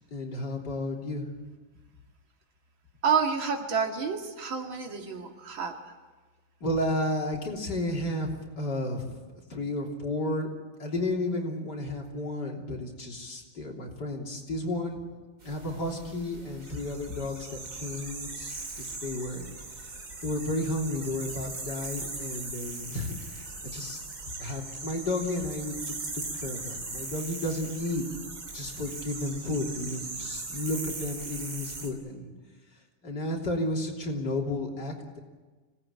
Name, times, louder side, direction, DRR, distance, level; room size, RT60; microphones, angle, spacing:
voice 1, 0.1-1.3 6.6-8.3 8.6-9.2 9.5-10.5 10.8-15.0 15.4-19.5 20.2-24.0 24.4-28.1 28.5-32.3 33.0-35.2, left 1 dB, 60° left, -1 dB, 3.9 m, -32 dB
voice 2, 3.0-5.7, right 6 dB, 90° right, 3 dB, 3.1 m, -29 dB
sound 1, 15.4-31.9, right 3 dB, 50° right, 3.4 m, -39 dB
25.0 x 18.0 x 8.7 m, 1.3 s
omnidirectional pair, 2.1 m